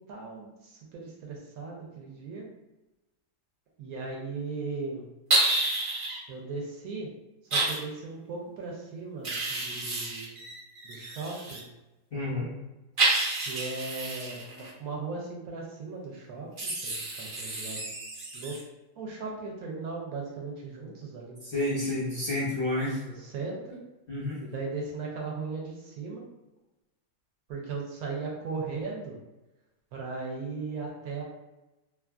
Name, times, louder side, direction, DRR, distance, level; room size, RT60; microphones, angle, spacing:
voice 1, 0.0-2.5 3.8-5.0 6.3-7.1 7.5-10.4 10.8-11.6 13.4-17.9 18.3-18.6 19.0-21.5 23.0-23.8 24.4-26.2 27.5-29.2 29.9-31.2, right 4 dB, 70° right, -2 dB, 1.0 m, -37 dB
sound 1, 5.3-6.2 7.5-7.8 9.2-11.6 13.0-14.7 16.6-18.6, right 2 dB, 55° right, 0.6 m, -29 dB
voice 2, 12.1-12.5 21.4-23.0 24.1-24.4, left 1 dB, 50° left, -8 dB, 0.7 m, -30 dB
3.0 x 2.4 x 2.3 m, 1.0 s
omnidirectional pair, 1.8 m